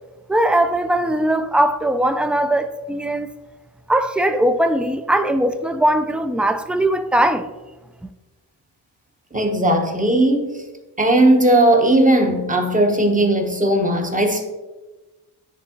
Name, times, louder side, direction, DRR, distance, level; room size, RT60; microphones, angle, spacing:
voice 1, 0.3-3.3 3.9-7.5, right 1 dB, 5° right, 0.3 m, -19 dB
voice 2, 9.3-10.6 11.0-14.4, right 1 dB, 20° right, 1.0 m, -17 dB
9.5 x 3.5 x 2.9 m
cardioid pair, 65°, 40 cm